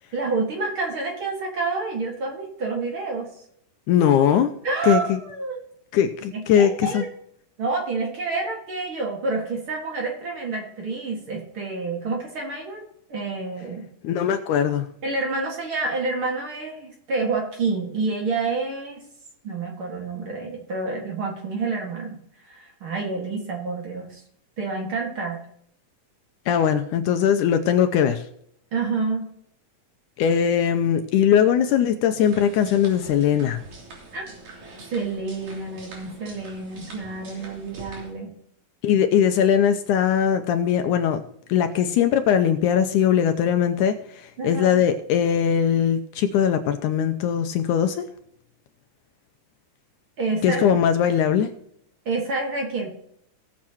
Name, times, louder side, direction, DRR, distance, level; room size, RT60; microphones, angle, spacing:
voice 1, 0.1-3.3 4.6-5.6 6.3-7.1 7.6-12.8 13.1-13.9 15.0-19.0 19.4-22.2 22.5-24.2 24.6-25.4 28.7-29.3 34.1-34.3 34.9-38.3 44.4-44.8 50.2-50.7 52.1-52.9, right 3 dB, 45° right, 0 dB, 2.4 m, -28 dB
voice 2, 3.9-4.5 4.8-5.2 5.9-7.0 14.0-14.9 26.5-28.3 30.2-33.6 38.8-41.2 41.5-48.1 50.4-51.5, left 8 dB, 80° left, 7 dB, 2.0 m, -20 dB
sound 1, 32.2-38.1, right 3 dB, 70° right, 4.6 m, -44 dB
18.0 x 7.3 x 2.9 m, 0.71 s
omnidirectional pair, 3.9 m